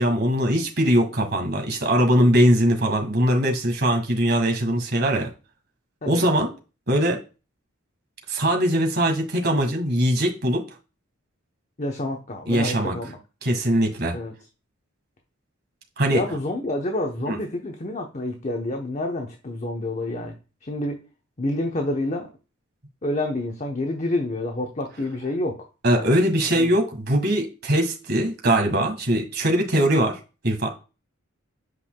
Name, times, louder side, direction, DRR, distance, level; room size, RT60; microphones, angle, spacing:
voice 1, 0.0-5.3 6.0-6.5 6.9-7.2 8.3-10.6 12.5-12.9 13.4-14.1 16.0-16.2 17.2-17.4 25.8-30.7, equal, 50° right, 3 dB, 1.6 m, -21 dB
voice 2, 11.8-13.2 14.1-14.3 16.1-20.3 20.6-21.0 21.4-22.3 23.0-26.1 26.5-26.7, left 1 dB, 35° left, 3 dB, 0.9 m, -28 dB
8.1 x 5.5 x 2.3 m, 0.31 s
head